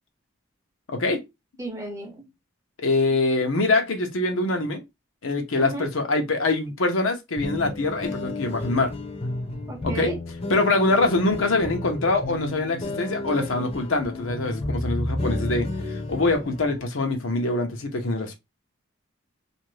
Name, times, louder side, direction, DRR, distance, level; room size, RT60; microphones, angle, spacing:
voice 1, 0.9-1.2 2.8-4.8 5.2-8.9 9.8-10.1 10.5-18.3, left 2 dB, 85° left, 0.7 m, -24 dB
voice 2, 1.6-2.3 5.6-5.9 9.7-10.2, right 2 dB, 15° right, 0.6 m, -33 dB
sound 1, 7.4-16.8, left 2 dB, 30° left, 0.6 m, -32 dB
2.6 x 2.6 x 3.1 m
head